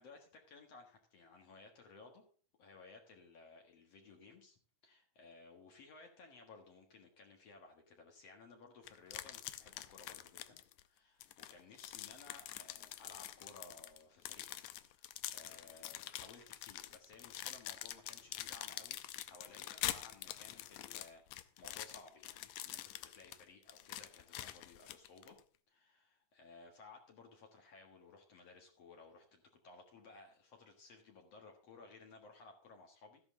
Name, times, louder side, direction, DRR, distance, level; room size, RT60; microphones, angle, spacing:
voice 1, 0.0-2.2 2.6-25.4 25.7-33.2, left 3 dB, 55° left, 2 dB, 2.6 m, -58 dB
sound 1, 8.9-10.8 11.2-25.4, left 13 dB, 75° left, 1.9 m, -46 dB
13.5 x 10.5 x 3.8 m, 0.41 s
omnidirectional pair, 3.6 m